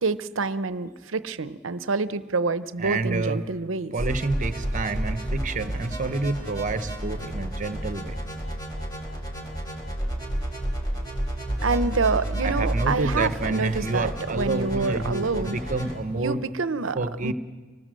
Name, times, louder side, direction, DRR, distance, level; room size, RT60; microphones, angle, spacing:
voice 1, 0.0-3.9 11.6-15.6 16.1-17.3, right 4 dB, 85° right, 14 dB, 0.8 m, -27 dB
voice 2, 2.8-3.4 3.9-8.2 12.4-16.4 16.9-17.3, right 3 dB, 40° right, 11 dB, 1.0 m, -28 dB
sound 1, 4.0-16.0, right 1 dB, 20° left, 4.5 m, -31 dB
25.5 x 19.0 x 7.6 m, 1.4 s
head